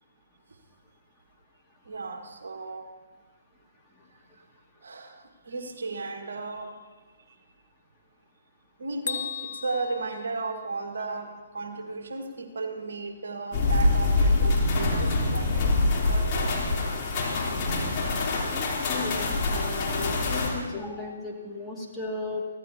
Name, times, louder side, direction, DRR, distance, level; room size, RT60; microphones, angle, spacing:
voice 1, 1.8-2.9 4.8-6.8 7.3-7.4 8.8-16.5, right 3 dB, 65° right, 5 dB, 1.5 m, -35 dB
Bell, 9.1-11.1, left 7 dB, 60° left, 0.8 m, -37 dB
sound 1, 13.5-20.5, left 2 dB, 30° left, 3.3 m, -25 dB
voice 2, 18.5-19.2 19.5-22.5, left 3 dB, 5° left, -4 dB, 2.1 m, -35 dB
24.0 x 15.5 x 2.8 m, 1.3 s
figure-of-eight pair, 130°, 0 cm